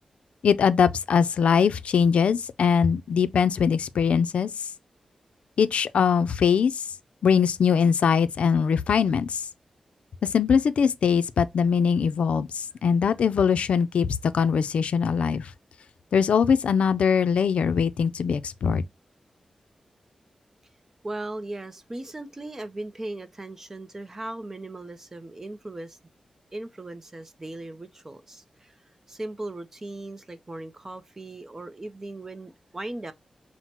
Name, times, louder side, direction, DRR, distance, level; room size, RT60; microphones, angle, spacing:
voice 1, 0.4-4.7 5.6-6.9 7.2-9.5 10.2-15.5 16.1-18.8, left 6 dB, 90° left, 0.4 m, -22 dB
voice 2, 21.0-26.0 26.5-28.8 29.1-33.1, right 2 dB, 20° right, 0.5 m, -38 dB
5.7 x 2.0 x 2.9 m
wide cardioid pair, 180°, 2 cm